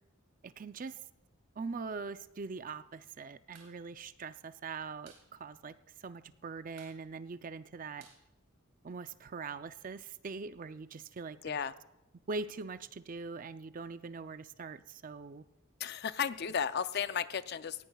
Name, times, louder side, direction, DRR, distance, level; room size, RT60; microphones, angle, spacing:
voice 1, 0.4-1.0 1.6-5.8 6.0-8.1 8.8-11.6 12.3-15.4, right 4 dB, 40° right, 12 dB, 0.4 m, -42 dB
sound 1, 3.5-3.8 4.0-4.1 4.4-5.3 5.6-5.7 6.0-6.4 6.7-9.1, right 5 dB, 70° right, 3.5 m, -60 dB
voice 2, 11.4-11.7 15.8-17.9, left 7 dB, 50° left, 13 dB, 0.5 m, -34 dB
19.0 x 16.0 x 2.3 m, 0.94 s
head